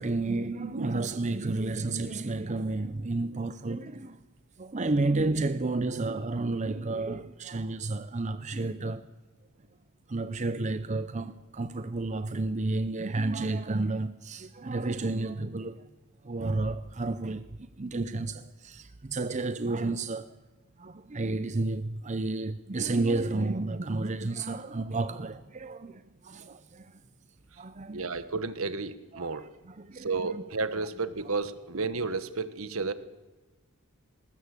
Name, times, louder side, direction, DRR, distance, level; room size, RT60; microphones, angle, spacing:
voice 1, 0.0-4.2 4.6-9.1 10.1-15.9 16.2-20.4 20.8-27.0 27.6-28.0 29.1-30.4 30.7-30.9 32.8-32.9, right 2 dB, 30° right, 0.6 m, -31 dB
voice 2, 27.9-29.4 29.9-32.9, right 4 dB, 65° right, 1.4 m, -32 dB
20.0 x 19.5 x 8.3 m
head